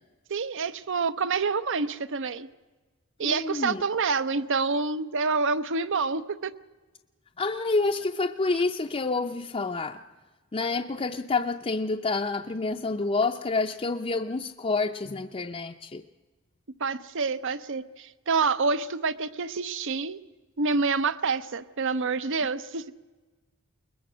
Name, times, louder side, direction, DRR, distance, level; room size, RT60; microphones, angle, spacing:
voice 1, 0.3-2.5 3.2-6.5 16.8-20.2 20.6-23.0, right 4 dB, 65° right, 14 dB, 0.7 m, -27 dB
voice 2, 3.2-3.8 7.4-10.0 10.5-16.0, left 3 dB, 30° left, 2 dB, 0.5 m, -28 dB
21.5 x 20.5 x 6.2 m, 1.2 s
head